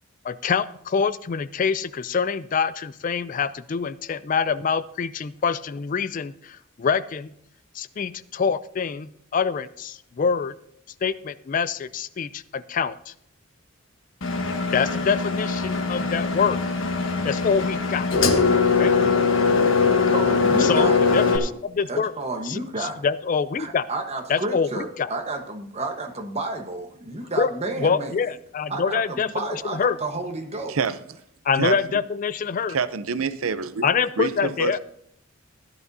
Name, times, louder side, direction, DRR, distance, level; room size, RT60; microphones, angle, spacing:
voice 1, 0.2-7.3 7.7-10.5 11.0-13.1 14.7-16.6 17.2-18.1 18.7-18.9 20.6-22.1 22.5-23.9 24.3-24.7 25.0-25.1 27.4-27.5 27.8-30.0 31.4-32.8 33.8-34.8, left 6 dB, 40° left, 16 dB, 0.3 m, -25 dB
Engine, 14.2-21.4, left 4 dB, 70° left, 1.4 m, -21 dB
voice 2, 20.1-21.0 21.9-23.0 23.6-28.2 28.7-30.8, right 2 dB, 30° right, 3 dB, 1.2 m, -31 dB
voice 3, 32.7-33.9 34.2-34.8, right 5 dB, 85° right, 13 dB, 0.6 m, -26 dB
16.0 x 11.0 x 2.7 m, 0.71 s
head